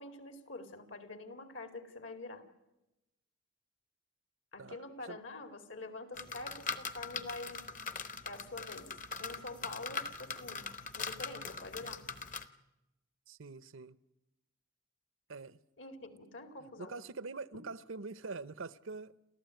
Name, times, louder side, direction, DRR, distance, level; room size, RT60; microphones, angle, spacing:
voice 1, 0.0-2.4 4.5-7.6 8.2-8.9 9.2-12.0 15.8-16.9, left 2 dB, 65° left, 2.4 m, -46 dB
voice 2, 4.6-5.2 13.3-14.0 15.3-15.6 16.8-19.1, right 4 dB, 75° right, 0.8 m, -44 dB
sound 1, 6.1-12.5, left 4 dB, 40° left, 1.0 m, -41 dB
28.5 x 14.5 x 9.1 m
head